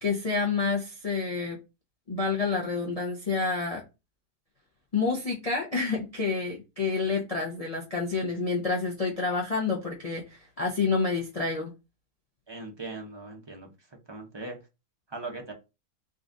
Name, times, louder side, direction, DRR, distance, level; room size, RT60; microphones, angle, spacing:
voice 1, 0.0-1.6 2.1-3.8 4.9-11.7, left 4 dB, 45° left, -1 dB, 0.5 m, -28 dB
voice 2, 12.5-13.7 14.1-14.6 15.1-15.5, right 3 dB, 25° right, 1 dB, 0.6 m, -39 dB
3.8 x 2.4 x 3.8 m, 0.26 s
omnidirectional pair, 1.7 m